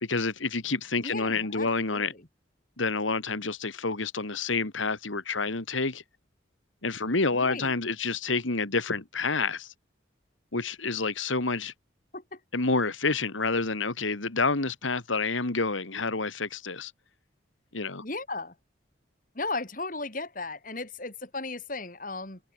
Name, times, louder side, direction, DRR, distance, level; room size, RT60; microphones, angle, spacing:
voice 1, 0.0-2.1 2.8-6.0 6.8-9.7 10.5-11.7 12.5-16.9 17.7-18.0, left 3 dB, 90° left, 2.2 m, -28 dB
voice 2, 1.0-2.2 7.3-7.7 12.1-12.4 18.0-18.5 19.3-22.4, left 3 dB, 45° left, 3.3 m, -36 dB
head